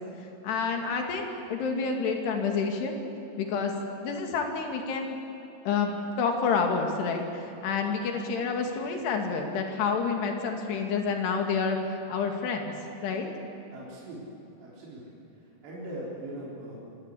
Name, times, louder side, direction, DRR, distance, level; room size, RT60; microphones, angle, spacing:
voice 1, 0.4-1.2 1.5-3.0 3.4-3.7 4.0-5.2 5.6-11.8 12.1-12.7 13.0-13.3, left 5 dB, 75° left, 3 dB, 4.3 m, -28 dB
voice 2, 13.7-14.3 14.6-15.1 15.6-16.8, right 1 dB, 80° right, -6 dB, 6.1 m, -40 dB
26.0 x 18.0 x 8.4 m, 3.0 s
omnidirectional pair, 4.9 m